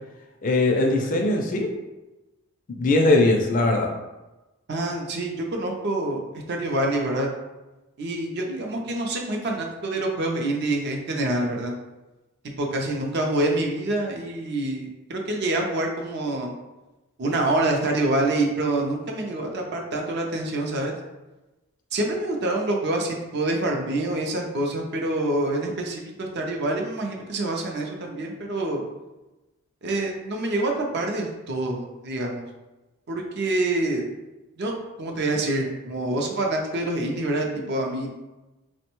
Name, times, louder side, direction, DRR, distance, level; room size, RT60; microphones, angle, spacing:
voice 1, 0.4-1.7 2.8-3.9, left 2 dB, 35° left, 2 dB, 0.3 m, -20 dB
voice 2, 4.7-6.2 6.5-7.3 8.0-11.7 12.6-16.5 17.2-20.9 21.9-28.8 29.8-32.4 33.1-34.0 34.6-38.3, right 2 dB, 50° right, 1 dB, 0.4 m, -26 dB
3.3 x 2.1 x 2.9 m, 1.0 s
head